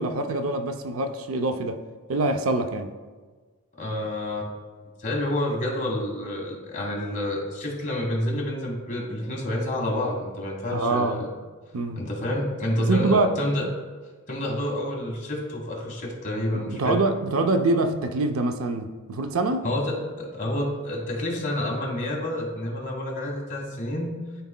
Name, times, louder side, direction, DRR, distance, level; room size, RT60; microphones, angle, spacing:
voice 1, 0.0-1.8 2.1-2.9 10.7-11.2 11.7-12.0 12.8-13.3 16.5-19.7, right 2 dB, 70° right, 7 dB, 0.5 m, -25 dB
voice 2, 3.7-4.5 5.0-11.3 12.0-13.7 14.3-17.0 19.6-24.2, left 1 dB, 35° left, -1 dB, 1.4 m, -28 dB
12.0 x 4.0 x 2.2 m, 1.4 s
head